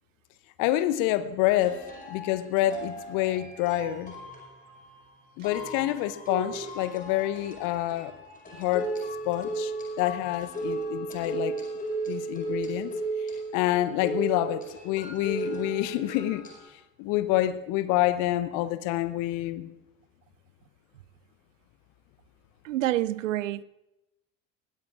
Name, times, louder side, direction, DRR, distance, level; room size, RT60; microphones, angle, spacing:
voice 1, 0.6-4.1 5.4-8.1 8.5-8.9 9.2-11.6 12.1-12.9 13.5-16.4 16.7-19.7, left 14 dB, 55° left, 0.9 m, -27 dB
sound 1, 0.8-0.9 1.6-16.7, right 2 dB, 20° left, 4.8 m, -36 dB
voice 2, 22.6-23.6, right 14 dB, 75° right, 0.5 m, -27 dB
20.0 x 18.0 x 2.5 m
figure-of-eight pair, 60°, 39 cm